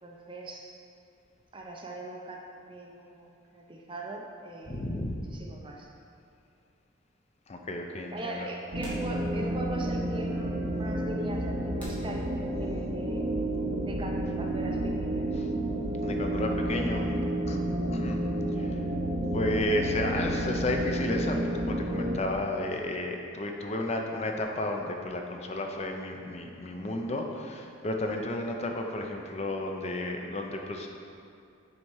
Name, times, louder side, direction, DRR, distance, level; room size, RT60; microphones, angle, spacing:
voice 1, 0.0-0.7 1.5-2.4 2.7-4.8 5.3-5.9 8.1-13.3 13.8-15.3, right 1 dB, 25° right, 0 dB, 0.6 m, -40 dB
voice 2, 4.7-5.2 7.5-8.5 15.3-15.5 16.0-17.1 17.5-17.6 17.9-18.3 18.6-18.8 19.3-30.9, left 1 dB, 30° left, 2 dB, 0.5 m, -32 dB
sound 1, 8.7-22.2, right 1 dB, 60° right, 0.7 m, -30 dB
sound 2, 8.8-9.7 10.0-10.1 10.9-11.0 11.8-13.0, equal, 5° left, 1.3 m, -47 dB
6.4 x 4.2 x 4.7 m, 2.5 s
head